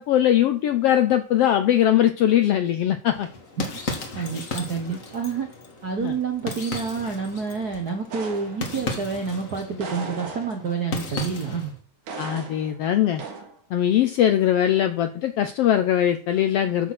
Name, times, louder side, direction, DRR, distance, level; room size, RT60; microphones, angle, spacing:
voice 1, 0.0-3.3 6.0-6.1 12.2-13.2 13.7-16.9, left 11 dB, 75° left, 8 dB, 1.4 m, -21 dB
sound 1, 3.1-11.8, left 3 dB, 35° left, 1.5 m, -35 dB
voice 2, 4.1-5.5 5.8-11.8, right 5 dB, 60° right, 4 dB, 1.0 m, -28 dB
sound 2, 8.1-9.0 9.8-10.9 12.1-12.8 13.2-13.6, right 4 dB, 75° right, 3.0 m, -37 dB
13.0 x 4.4 x 6.0 m, 0.40 s
omnidirectional pair, 3.5 m